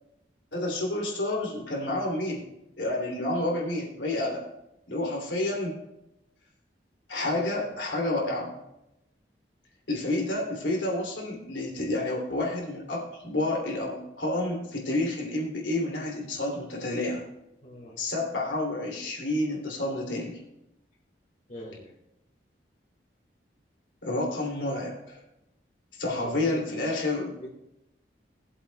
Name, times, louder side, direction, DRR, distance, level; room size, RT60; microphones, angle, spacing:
voice 1, 0.5-2.4 2.8-4.4 4.9-5.7 7.1-8.6 9.9-17.2 18.0-20.4 24.0-25.2 26.0-27.3, left 2 dB, 80° left, -1 dB, 3.0 m, -29 dB
voice 2, 17.6-18.0 21.5-21.9 26.0-26.6 27.3-27.5, left 1 dB, 45° left, -3 dB, 1.8 m, -42 dB
18.5 x 8.0 x 2.3 m, 0.87 s
head